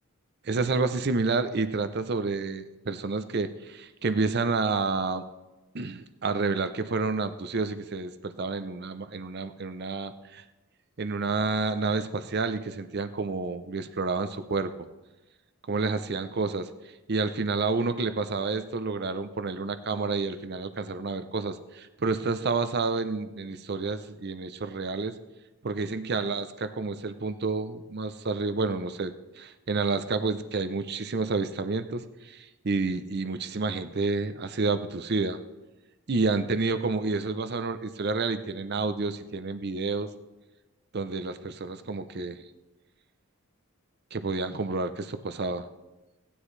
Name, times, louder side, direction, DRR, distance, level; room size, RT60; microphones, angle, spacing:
voice 1, 0.5-5.2 5.7-10.4 11.0-14.7 15.7-16.7 17.1-25.1 25.6-35.4 36.1-40.1 40.9-42.4 44.1-45.6, right 3 dB, 50° right, 11 dB, 0.6 m, -29 dB
17.0 x 9.9 x 3.2 m, 1.1 s
head